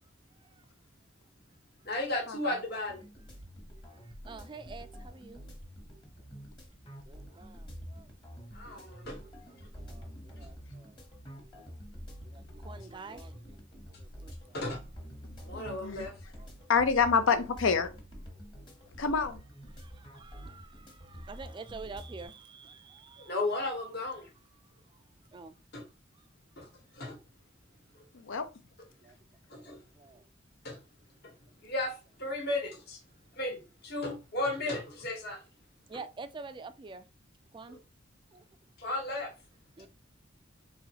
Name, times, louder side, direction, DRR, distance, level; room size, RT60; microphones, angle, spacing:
voice 1, 1.8-3.0 8.5-9.2 14.5-14.8 15.5-16.1 23.2-24.3 25.7-25.8 26.6-26.7 27.0-27.2 29.5-29.8 30.6-30.8 31.6-33.0 33.4-35.4 37.7-37.8 38.8-39.3, left 2 dB, 55° left, 1.2 m, -34 dB
sound 1, 2.9-22.3, equal, 25° left, 1.1 m, -47 dB
voice 2, 4.3-5.4 7.1-8.1 9.5-11.0 11.5-11.6 12.2-13.6 14.0-14.6 16.4-16.5 19.8-23.4 25.3-25.5 29.0-29.1 29.5-30.2 35.9-37.0 37.5-37.8 38.3-38.4 39.8-39.9, right 4 dB, 25° right, 0.3 m, -48 dB
voice 3, 15.3-16.1 16.7-17.9 19.0-19.4 28.1-28.5, left 5 dB, 85° left, 0.6 m, -27 dB
4.0 x 3.0 x 2.9 m
head